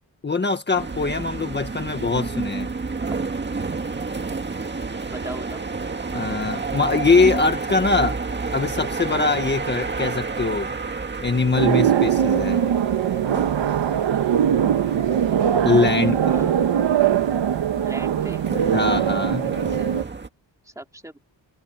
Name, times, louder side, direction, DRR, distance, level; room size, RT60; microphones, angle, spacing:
voice 1, 0.2-2.7 6.1-8.2 8.5-10.7 11.2-12.6 15.6-16.2 18.7-19.5, left 4 dB, 25° left, 1.7 m, -22 dB
sound 1, 0.7-20.3, right 4 dB, 25° right, 1.9 m, -31 dB
voice 2, 5.1-5.6 16.1-16.6 17.8-18.4 20.6-21.2, right 1 dB, 5° right, 2.7 m, -38 dB
sound 2, 11.6-20.0, right 9 dB, 75° right, 1.6 m, -21 dB
wide cardioid pair, 145°, 44 cm